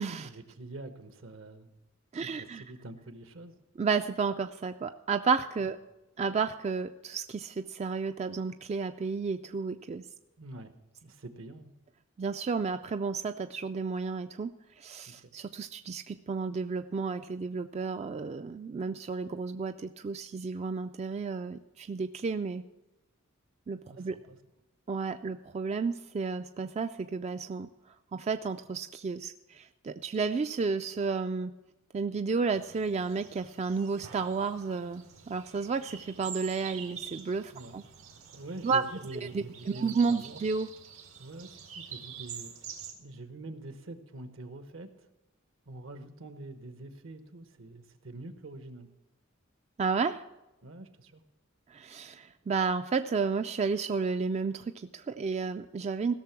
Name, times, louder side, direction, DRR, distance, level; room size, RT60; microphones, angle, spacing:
voice 1, 0.2-1.7 2.2-3.5 10.4-10.7 11.0-11.7 15.1-15.3 23.9-24.4 37.5-37.8 38.3-40.4 41.2-42.5 43.0-45.0 45.7-48.9 50.6-51.2, right 2 dB, 70° right, 9 dB, 1.0 m, -45 dB
voice 2, 2.1-2.6 3.8-5.8 6.2-10.0 12.2-22.6 23.7-24.2 24.9-27.7 28.1-31.5 31.9-37.8 38.6-38.8 39.1-40.7 49.8-50.2 51.7-56.1, right 5 dB, 30° right, 9 dB, 0.3 m, -32 dB
sound 1, 32.5-42.9, right 8 dB, 90° right, 1.9 m, -47 dB
16.0 x 6.7 x 5.9 m, 0.99 s
head